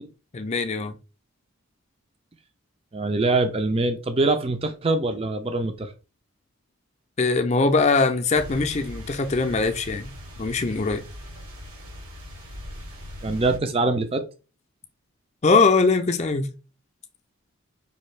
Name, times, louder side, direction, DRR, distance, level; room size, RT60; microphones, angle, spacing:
voice 1, 0.3-1.0 7.2-10.1 10.4-11.0 15.4-16.5, left 4 dB, 30° left, 0.5 m, -21 dB
voice 2, 2.9-5.9 13.2-14.2, right 2 dB, 25° right, 0.4 m, -23 dB
sound 1, 8.3-13.6, left 1 dB, 90° right, 2.2 m, -40 dB
5.3 x 2.8 x 3.2 m
head